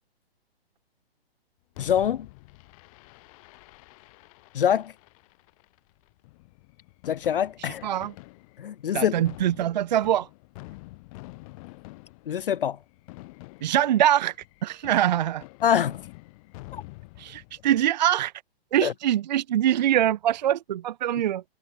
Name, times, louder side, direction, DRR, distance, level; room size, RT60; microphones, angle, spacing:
Fireworks, 1.7-17.9, left 24 dB, 35° left, 7.2 m, -47 dB
voice 1, 1.8-2.3 4.5-4.9 7.1-7.8 8.6-9.1 12.3-12.8 15.6-16.0 16.7-16.8 18.8-18.9, left 9 dB, 60° left, 0.6 m, -24 dB
voice 2, 7.6-8.1 8.9-10.3 13.6-14.3 14.6-15.4 17.2-18.3 18.7-21.4, right 11 dB, 45° right, 0.6 m, -23 dB
figure-of-eight pair, 130°, 31 cm